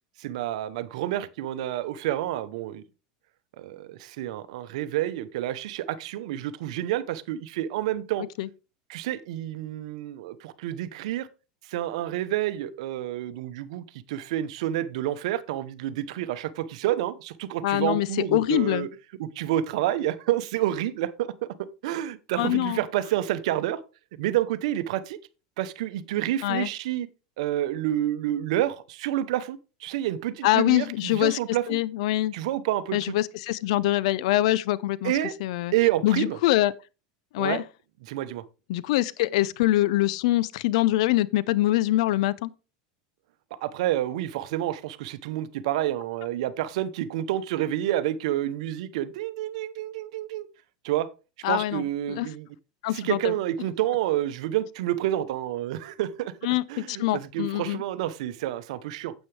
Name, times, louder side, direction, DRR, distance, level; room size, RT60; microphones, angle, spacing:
voice 1, 0.2-2.8 3.6-8.3 8.9-11.3 11.6-18.9 19.2-21.3 21.8-23.8 24.2-25.2 25.6-27.1 27.4-31.8 32.3-33.0 35.0-35.3 35.7-36.4 37.4-37.6 38.0-38.4 43.6-50.5 50.8-51.1 51.5-52.5 52.9-56.3 56.7-59.1, right 13 dB, 75° right, 0.9 m, -29 dB
voice 2, 17.6-18.9 22.4-22.8 26.4-26.7 30.4-31.4 31.7-32.3 32.9-35.1 35.4-35.7 36.0-36.7 37.3-37.6 38.7-42.5 51.4-52.3 52.8-53.3 56.4-57.8, left 16 dB, 75° left, 0.6 m, -24 dB
9.3 x 8.1 x 3.3 m
supercardioid pair, 120°, 4 cm